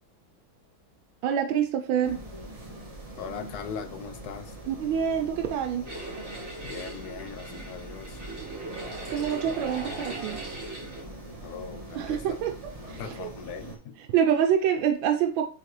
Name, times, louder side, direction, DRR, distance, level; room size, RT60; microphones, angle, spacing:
voice 1, 1.2-2.2 4.7-5.9 9.1-10.4 11.9-12.5 12.9-13.3 14.0-15.4, right 8 dB, 80° right, 1.4 m, -26 dB
sound 1, 2.0-13.8, right 1 dB, 20° right, 1.4 m, -43 dB
voice 2, 3.1-4.5 6.6-8.2 11.4-12.2 12.8-14.0, left 7 dB, 65° left, 1.0 m, -40 dB
sound 2, 5.8-11.0, right 2 dB, 50° right, 4.2 m, -39 dB
8.2 x 3.8 x 3.1 m
omnidirectional pair, 2.2 m